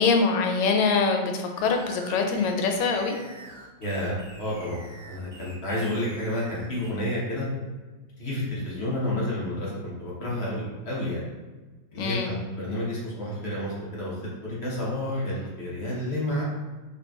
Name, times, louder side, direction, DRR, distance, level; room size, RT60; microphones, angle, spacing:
voice 1, 0.0-3.1 12.0-12.3, left 4 dB, 85° left, 3 dB, 1.5 m, -24 dB
sound 1, 1.6-6.9, right 1 dB, 85° right, 0.5 m, -46 dB
voice 2, 3.8-4.8 5.1-7.5 8.2-11.2 11.9-14.2 14.4-16.4, left 1 dB, 55° left, -7 dB, 0.7 m, -30 dB
4.0 x 3.6 x 2.3 m, 1.3 s
omnidirectional pair, 2.4 m